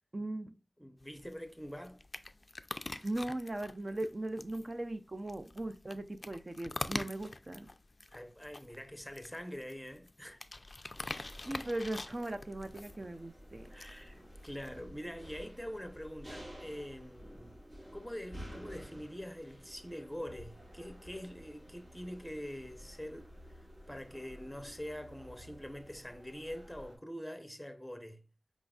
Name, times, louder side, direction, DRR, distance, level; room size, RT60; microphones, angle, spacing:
voice 1, 0.1-0.6 3.0-7.7 11.5-13.7, right 1 dB, 40° right, 0.4 m, -38 dB
voice 2, 0.8-2.0 8.1-10.4 13.7-17.6 17.9-28.2, equal, 5° left, 0.7 m, -45 dB
sound 1, 1.0-14.8, left 2 dB, 45° left, 0.3 m, -46 dB
sound 2, 10.9-26.9, equal, 55° right, 2.4 m, -52 dB
4.9 x 3.9 x 2.3 m
wide cardioid pair, 70°, 0 cm